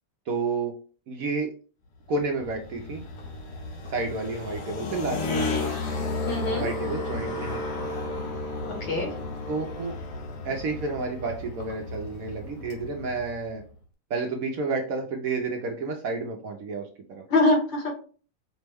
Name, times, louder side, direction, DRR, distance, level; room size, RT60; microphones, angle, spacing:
voice 1, 0.3-0.7 1.1-1.5 2.1-3.0 3.9-5.7 6.4-7.6 9.5-10.0 10.4-13.6 14.1-17.2, right 3 dB, 65° right, 2 dB, 0.9 m, -30 dB
sound 1, 2.1-13.7, left 2 dB, 65° left, 1.3 m, -33 dB
voice 2, 6.3-6.7 8.6-9.1 17.3-17.9, left 2 dB, 90° left, -1 dB, 2.2 m, -24 dB
5.1 x 2.1 x 3.4 m, 0.39 s
omnidirectional pair, 2.0 m